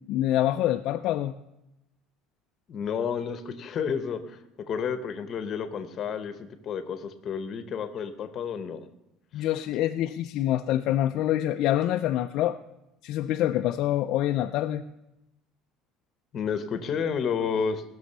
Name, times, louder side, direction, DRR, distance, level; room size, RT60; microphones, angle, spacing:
voice 1, 0.0-1.3 9.3-12.6 13.0-14.8, left 13 dB, 50° left, 6 dB, 0.4 m, -26 dB
voice 2, 2.7-4.4 4.7-8.9 9.4-9.5 16.3-17.8, left 6 dB, 30° left, 9 dB, 0.9 m, -31 dB
18.0 x 6.3 x 6.8 m, 0.90 s
cardioid pair, 175°, 0 cm